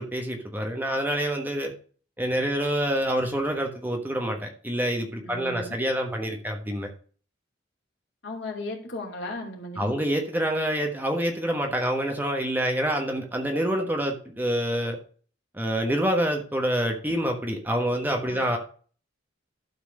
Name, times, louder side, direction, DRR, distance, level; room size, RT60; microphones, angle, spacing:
voice 1, 0.0-1.7 2.2-6.9 9.8-15.0 15.5-18.6, right 1 dB, 10° right, 1.2 m, -27 dB
voice 2, 5.2-5.8 8.2-10.0 18.3-18.6, left 2 dB, 60° left, 2.7 m, -36 dB
12.0 x 4.3 x 6.5 m
head